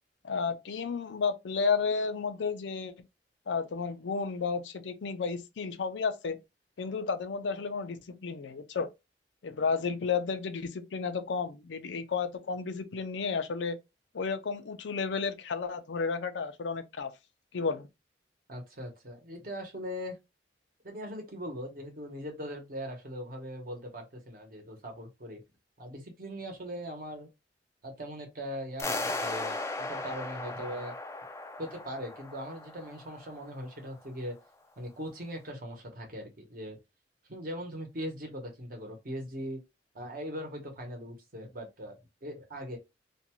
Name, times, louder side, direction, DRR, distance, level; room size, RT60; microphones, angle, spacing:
voice 1, 0.2-2.9 3.5-6.4 6.8-8.9 9.4-13.8 14.1-17.1 17.5-17.9, left 5 dB, 85° left, 0.5 m, -32 dB
voice 2, 18.5-20.2 20.8-25.4 25.8-27.3 27.8-31.0 31.6-34.4 34.8-36.8 37.3-39.6 39.9-42.8, equal, 55° right, 1.0 m, -40 dB
sound 1, 28.8-33.7, left 2 dB, 15° left, 0.3 m, -37 dB
2.5 x 2.3 x 2.9 m
head